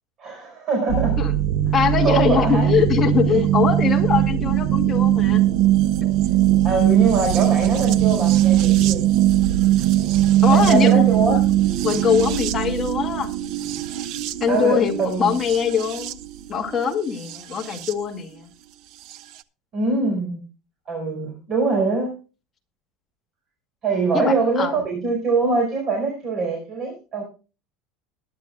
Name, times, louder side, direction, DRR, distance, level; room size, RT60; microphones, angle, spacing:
voice 1, 0.2-1.2 2.0-2.7 3.3-3.4 6.6-9.1 10.5-11.4 14.5-15.3 19.7-20.4 20.9-22.1 23.8-27.2, right 3 dB, 35° right, 2 dB, 4.8 m, -23 dB
sound 1, 0.9-17.9 19.1-19.2, right 13 dB, 50° right, 0.7 m, -20 dB
voice 2, 1.7-5.4 10.4-11.0 11.8-13.3 14.4-16.2 16.5-18.5 24.1-24.8, left 7 dB, 20° left, 2 dB, 2.1 m, -22 dB
21.5 x 10.5 x 2.3 m, 0.32 s
cardioid pair, 165°, 0 cm